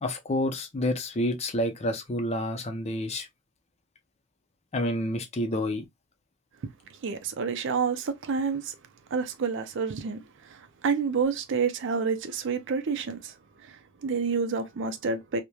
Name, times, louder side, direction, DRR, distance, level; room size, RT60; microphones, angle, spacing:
voice 1, 0.0-3.3 4.7-5.8, left 1 dB, 30° left, 0.5 m, -29 dB
voice 2, 7.0-8.7 9.1-10.2 10.5-13.3 13.7-15.4, right 5 dB, 65° right, 0.5 m, -29 dB
2.9 x 2.1 x 2.2 m
head